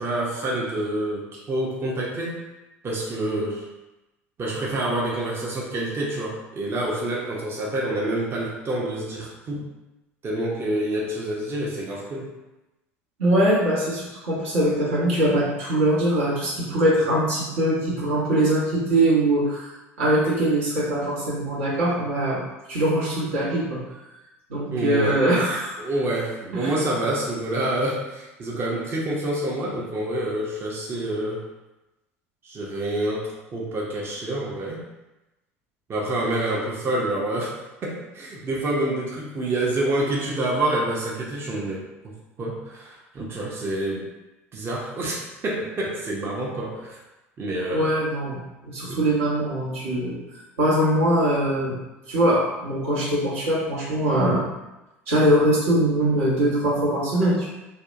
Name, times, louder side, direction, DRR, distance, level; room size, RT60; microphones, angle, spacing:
voice 1, 0.0-2.4 2.8-3.7 4.4-9.7 10.2-12.3 24.7-25.3 25.8-31.4 32.4-34.8 35.9-37.5 37.8-42.1 42.4-44.1 44.5-47.0 47.4-48.0 48.9-49.0, right 1 dB, 35° right, -3 dB, 0.6 m, -27 dB
voice 2, 13.2-22.4 22.7-23.8 24.5-25.8 26.5-26.7 47.7-50.2 50.6-51.8 52.1-54.5 55.1-57.4, right 1 dB, 75° right, -7 dB, 0.9 m, -22 dB
2.6 x 2.1 x 2.5 m, 0.99 s
hypercardioid pair, 70°, 7 cm